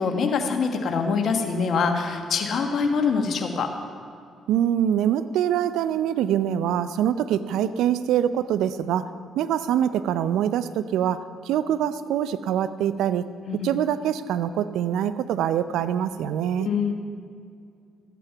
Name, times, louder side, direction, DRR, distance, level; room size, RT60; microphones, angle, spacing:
voice 1, 0.0-3.7 13.5-13.7 16.5-16.9, left 5 dB, 60° left, 4 dB, 1.4 m, -24 dB
voice 2, 4.5-9.1 9.4-13.2 13.6-16.7, right 10 dB, 70° right, 13 dB, 0.4 m, -24 dB
14.0 x 9.2 x 5.7 m, 2.3 s
hypercardioid pair, 45°, 0 cm